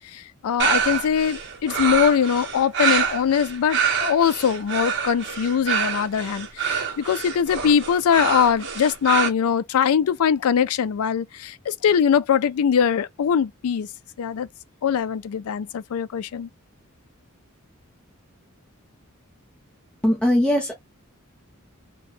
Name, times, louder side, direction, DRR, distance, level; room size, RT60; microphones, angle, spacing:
voice 1, 0.1-13.9 14.2-14.5 14.8-16.5, left 7 dB, 75° left, 0.4 m, -22 dB
sound 1, 0.6-9.3, right 7 dB, 55° right, 0.8 m, -26 dB
voice 2, 20.0-20.7, left 1 dB, 5° left, 0.5 m, -20 dB
2.9 x 2.1 x 3.1 m
head